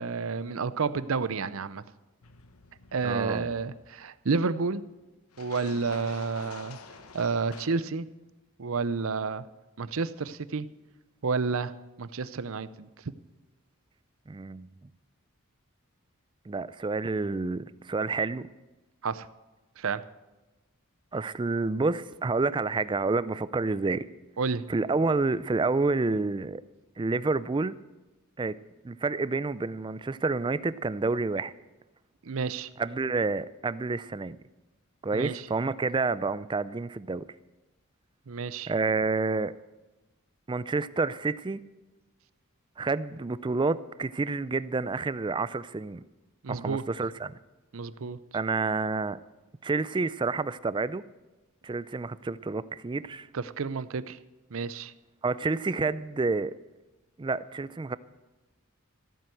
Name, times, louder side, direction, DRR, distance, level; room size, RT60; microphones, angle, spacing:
voice 1, 0.0-1.8 2.9-4.8 5.4-6.8 7.1-8.1 8.6-9.4 9.8-10.7 11.2-12.9 19.0-19.3 19.8-20.0 24.4-24.6 32.2-32.7 35.1-35.4 38.3-38.7 46.4-46.8 47.7-48.2 53.3-54.2 54.5-54.9, right 4 dB, 65° right, 15 dB, 0.6 m, -30 dB
sound 1, 2.2-4.0 5.3-7.7, left 4 dB, 75° left, 1.0 m, -48 dB
voice 2, 3.0-3.5 14.3-14.9 16.5-18.5 21.1-24.1 24.7-26.6 27.0-27.8 28.4-28.6 28.8-31.5 32.8-34.4 35.0-37.3 38.7-39.5 40.5-41.6 42.8-46.0 46.5-47.3 48.3-49.2 49.6-51.0 51.6-53.3 55.2-56.6 57.2-58.0, right 3 dB, 20° right, 17 dB, 0.4 m, -29 dB
14.5 x 9.1 x 7.7 m, 1.1 s
head